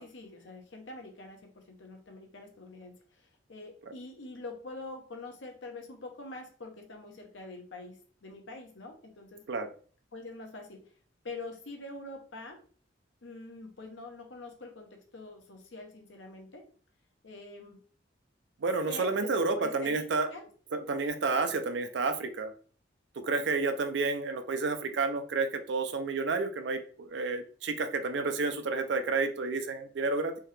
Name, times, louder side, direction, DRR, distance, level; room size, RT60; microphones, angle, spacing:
voice 1, 0.0-9.4 10.1-10.8 11.2-12.6 13.2-16.6 17.2-17.8 18.9-20.4, left 2 dB, 75° left, 3 dB, 0.8 m, -45 dB
voice 2, 18.6-20.3 20.7-22.5 23.2-30.4, right 3 dB, 65° right, 8 dB, 0.5 m, -30 dB
3.5 x 2.7 x 3.2 m, 0.43 s
head